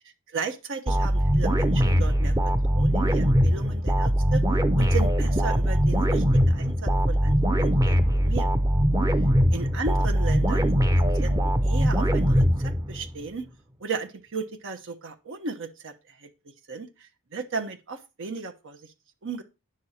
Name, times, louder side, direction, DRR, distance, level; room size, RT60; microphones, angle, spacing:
voice 1, 0.0-4.4 4.8-8.5 9.5-11.3 11.6-13.5 13.8-16.3 16.7-18.9 19.2-19.4, right 4 dB, 60° right, 6 dB, 1.0 m, -36 dB
sound 1, 0.9-13.1, equal, 15° right, 0.8 m, -22 dB
9.9 x 6.4 x 4.2 m, 0.28 s
head